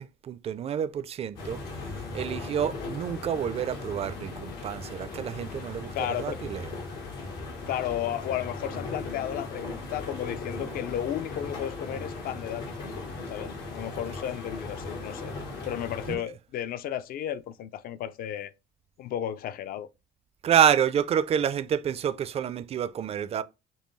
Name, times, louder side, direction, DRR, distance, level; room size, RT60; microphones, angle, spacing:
voice 1, 0.0-1.6 2.1-6.6 16.1-16.2 20.4-23.4, right 9 dB, 35° right, 0.4 m, -28 dB
sound 1, 1.4-16.2, left 3 dB, 90° left, 1.5 m, -38 dB
voice 2, 5.9-6.4 7.7-12.7 13.3-15.4 15.7-18.5 19.0-19.9, left 10 dB, 60° left, 0.5 m, -33 dB
5.3 x 2.3 x 3.1 m
cardioid pair, 110°, 17 cm